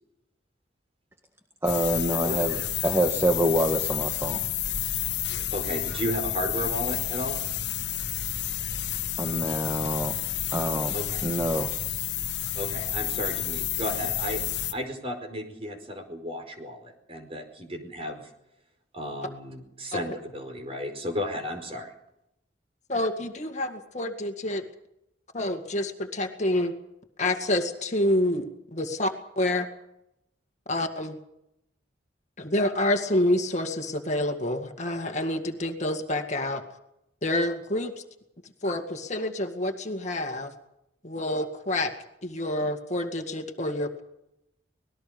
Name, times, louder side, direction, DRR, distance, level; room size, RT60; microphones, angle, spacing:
voice 1, 1.6-4.4 9.2-10.1 10.5-10.9 11.2-11.7, equal, 15° right, 5 dB, 1.7 m, -26 dB
sound 1, 1.7-14.7, left 11 dB, 75° left, 1.4 m, -30 dB
voice 2, 2.2-2.7 5.5-7.4 10.9-11.2 12.6-18.2 18.9-21.9, equal, 35° right, 5 dB, 4.9 m, -34 dB
voice 3, 22.9-24.6 25.3-26.7 27.2-29.7 30.7-31.2 32.4-36.6 37.2-38.0 38.6-40.5 41.0-41.9 42.2-44.0, left 1 dB, 40° left, 5 dB, 2.1 m, -28 dB
25.5 x 20.0 x 5.3 m, 0.82 s
head